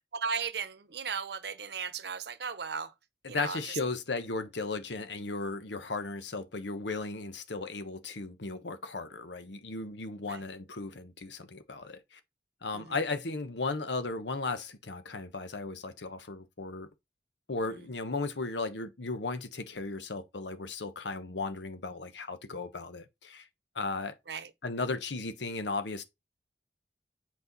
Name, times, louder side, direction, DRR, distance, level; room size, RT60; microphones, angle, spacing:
voice 1, 0.1-2.9 3.3-3.6 10.3-10.4 12.7-12.8 24.3-24.5, right 6 dB, 70° right, 0.8 m, -36 dB
voice 2, 3.2-12.0 12.6-16.9 17.5-23.4 23.7-24.2 24.6-26.0, left 3 dB, 90° left, 1.1 m, -36 dB
8.3 x 4.6 x 4.0 m
head